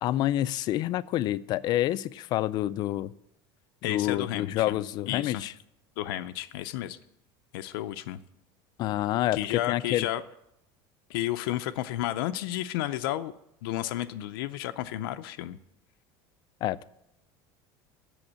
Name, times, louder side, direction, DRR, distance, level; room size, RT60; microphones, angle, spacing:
voice 1, 0.0-3.1 3.8-5.5 8.8-10.1 16.6-16.9, left 14 dB, 40° left, 17 dB, 0.3 m, -28 dB
voice 2, 3.8-4.8 5.1-5.4 6.0-7.0 7.5-8.2 9.3-10.2 11.1-13.3 13.6-15.6, left 14 dB, 90° left, 9 dB, 0.5 m, -32 dB
8.0 x 7.1 x 8.5 m, 0.80 s
cardioid pair, 155°, 12 cm